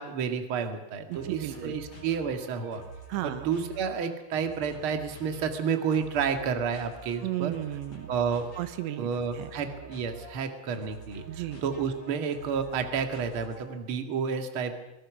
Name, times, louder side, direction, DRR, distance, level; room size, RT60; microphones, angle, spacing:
voice 1, 0.0-2.8 3.2-7.5 8.1-8.5 9.0-11.3 11.6-14.8, right 6 dB, 45° right, 6 dB, 1.9 m, -30 dB
sound 1, 1.1-13.9, right 2 dB, 25° left, 6.8 m, -47 dB
voice 2, 1.1-1.8 3.1-3.5 7.2-8.1 8.6-9.5 11.3-11.6, right 14 dB, 90° right, 11 dB, 3.3 m, -34 dB
23.5 x 20.0 x 6.2 m, 0.91 s
omnidirectional pair, 5.0 m